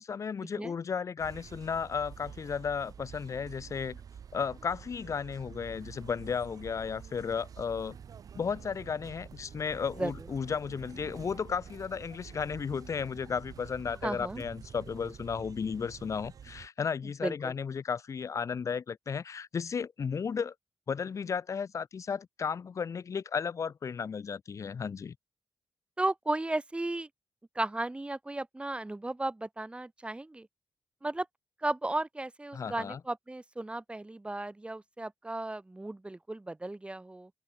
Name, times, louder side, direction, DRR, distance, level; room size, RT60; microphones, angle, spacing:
voice 1, 0.0-4.0 4.3-8.0 8.4-20.5 20.9-25.2 32.5-33.0, left 6 dB, 55° left, 1.8 m, -34 dB
sound 1, 1.2-16.7, right 7 dB, 70° right, 6.6 m, -48 dB
voice 2, 14.0-14.4 17.2-17.5 26.0-27.1 27.6-30.5 31.0-31.3 31.6-37.3, right 2 dB, 15° right, 5.6 m, -35 dB
open air
cardioid pair, 80°, 6 cm